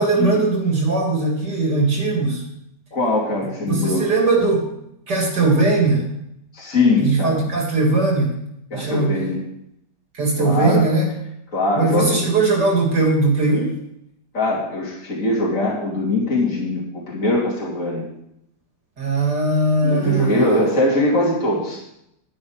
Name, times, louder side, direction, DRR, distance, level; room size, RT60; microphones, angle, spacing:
voice 1, 0.0-2.4 3.6-4.7 5.1-6.1 7.0-8.4 8.7-9.2 10.1-11.1 11.8-13.7 19.0-20.6, right 3 dB, 65° right, -1 dB, 3.4 m, -19 dB
voice 2, 2.9-4.0 6.5-7.4 8.7-9.4 10.4-10.9 11.5-12.2 14.3-16.8 17.1-18.0 19.8-21.8, left 2 dB, 45° left, -5 dB, 3.2 m, -21 dB
11.0 x 10.5 x 5.0 m, 0.77 s
omnidirectional pair, 1.9 m